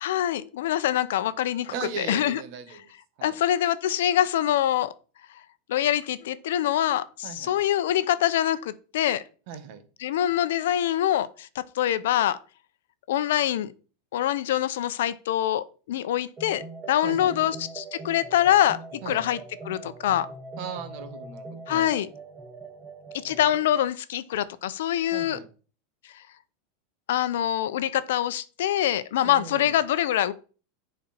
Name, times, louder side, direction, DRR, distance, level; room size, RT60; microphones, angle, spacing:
voice 1, 0.0-2.4 3.2-4.9 5.7-9.2 10.0-12.4 13.1-13.7 14.1-19.4 19.6-20.3 21.7-22.1 23.2-25.4 27.1-30.3, left 11 dB, 85° left, 0.6 m, -25 dB
voice 2, 1.7-2.8 3.2-3.4 7.2-7.6 9.5-9.8 17.0-17.5 19.0-19.2 20.6-21.9 25.1-25.5 29.2-29.7, right 7 dB, 55° right, 1.6 m, -38 dB
sound 1, 16.4-23.7, right 3 dB, 20° right, 1.2 m, -42 dB
10.0 x 4.3 x 4.4 m
supercardioid pair, 150°, 0 cm